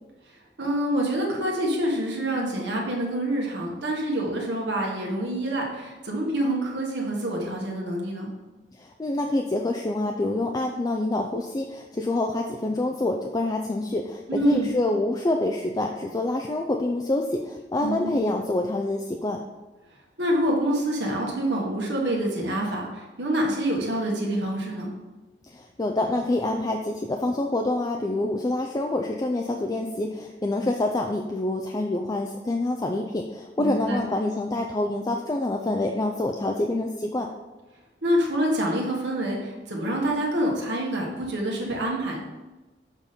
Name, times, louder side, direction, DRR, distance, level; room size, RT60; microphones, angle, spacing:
voice 1, 0.6-8.3 14.3-14.7 17.8-18.2 20.2-24.9 33.6-34.0 38.0-42.2, right 1 dB, 75° right, -1 dB, 1.5 m, -26 dB
voice 2, 8.8-19.4 25.5-37.3, left 2 dB, 20° left, 3 dB, 0.4 m, -26 dB
7.2 x 4.2 x 5.2 m, 1.1 s
head